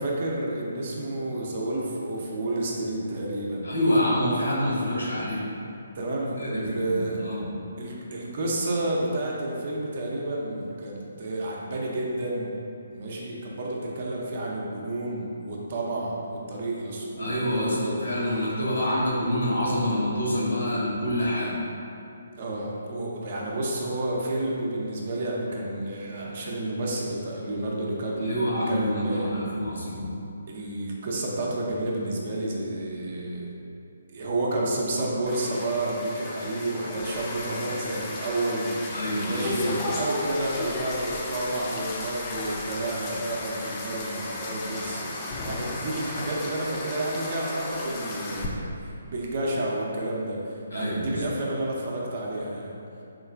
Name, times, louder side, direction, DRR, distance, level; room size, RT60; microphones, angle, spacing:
voice 1, 0.0-3.7 5.9-7.2 7.8-12.6 12.9-18.3 22.4-28.4 28.7-29.4 30.5-33.5 34.1-39.0 39.2-52.7, right 1 dB, 45° right, -3 dB, 0.5 m, -30 dB
voice 2, 3.6-5.4 6.4-7.5 17.2-21.5 28.2-30.1 38.9-39.8 50.7-51.1, equal, 75° left, -5 dB, 0.8 m, -27 dB
sound 1, 35.3-48.4, left 2 dB, 25° left, 0.3 m, -35 dB
3.7 x 2.3 x 2.4 m, 2.6 s
figure-of-eight pair, 140°, 0 cm